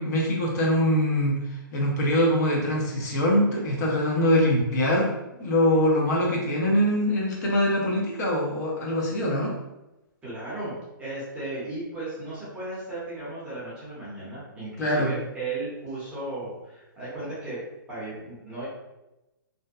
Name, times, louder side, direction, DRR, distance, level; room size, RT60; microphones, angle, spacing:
voice 1, 0.0-1.4 1.7-5.1 5.4-9.6 14.8-15.1, equal, 50° left, -2 dB, 0.7 m, -23 dB
voice 2, 10.2-17.6 17.9-18.7, right 2 dB, 10° right, -10 dB, 0.7 m, -35 dB
2.5 x 2.2 x 2.4 m, 0.97 s
hypercardioid pair, 165°, 12 cm